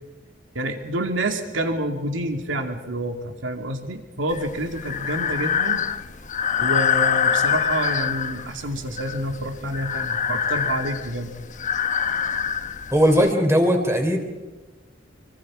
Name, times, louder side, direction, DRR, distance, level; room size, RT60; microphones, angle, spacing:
voice 1, 0.5-5.8 6.6-11.3, right 1 dB, 80° right, 5 dB, 2.4 m, -28 dB
Breathing, 4.3-13.3, left 8 dB, 40° left, 0.9 m, -25 dB
voice 2, 12.9-14.2, equal, 15° right, 4 dB, 3.6 m, -18 dB
27.0 x 24.5 x 5.0 m, 1.2 s
head